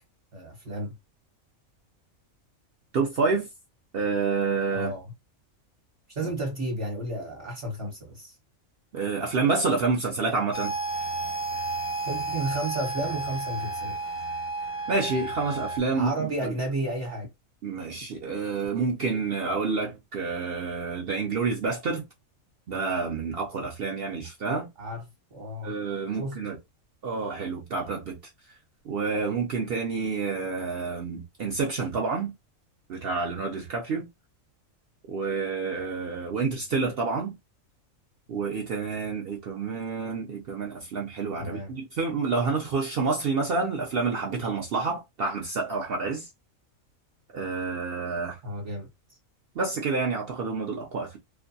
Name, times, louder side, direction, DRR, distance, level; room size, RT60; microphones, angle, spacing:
voice 1, 0.3-0.9 4.7-5.0 6.1-8.3 12.1-14.0 15.9-17.3 24.8-25.0 25.3-25.7 26.2-26.4 41.4-41.7 48.4-48.9, right 1 dB, 45° right, 1.0 m, -32 dB
voice 2, 2.9-3.5 3.9-4.9 8.9-10.7 14.9-16.5 17.6-22.1 22.7-24.7 25.6-26.6 27.0-28.2 28.8-32.3 32.9-34.1 35.1-37.3 38.3-46.3 47.3-48.4 49.6-51.2, right 4 dB, 65° right, 0.6 m, -28 dB
sound 1, 10.5-15.8, right 3 dB, 50° left, 0.6 m, -32 dB
2.5 x 2.2 x 2.6 m
omnidirectional pair, 1.5 m